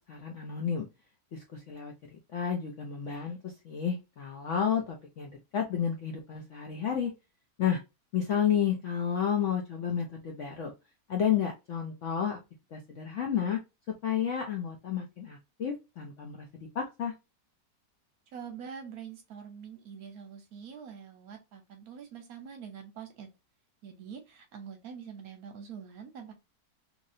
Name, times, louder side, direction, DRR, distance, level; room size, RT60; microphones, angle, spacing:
voice 1, 0.1-0.9 1.3-1.9 2.3-7.1 7.6-7.8 8.1-10.7 11.1-12.4 12.7-13.6 14.0-17.1, left 8 dB, 70° left, 0.7 m, -31 dB
voice 2, 18.3-23.3 23.8-26.3, right 7 dB, 70° right, 1.0 m, -45 dB
3.0 x 2.7 x 2.5 m
omnidirectional pair, 1.9 m